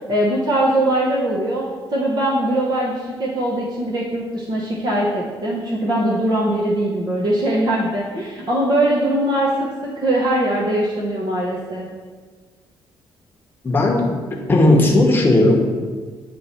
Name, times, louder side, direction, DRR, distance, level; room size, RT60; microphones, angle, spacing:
voice 1, 0.1-1.6 1.9-9.5 9.8-11.9, right 1 dB, 50° right, -3 dB, 0.9 m, -21 dB
voice 2, 13.6-14.0 14.5-15.6, left 1 dB, 20° left, 0 dB, 0.9 m, -15 dB
8.0 x 3.0 x 4.3 m, 1.5 s
cardioid pair, 135°, 9 cm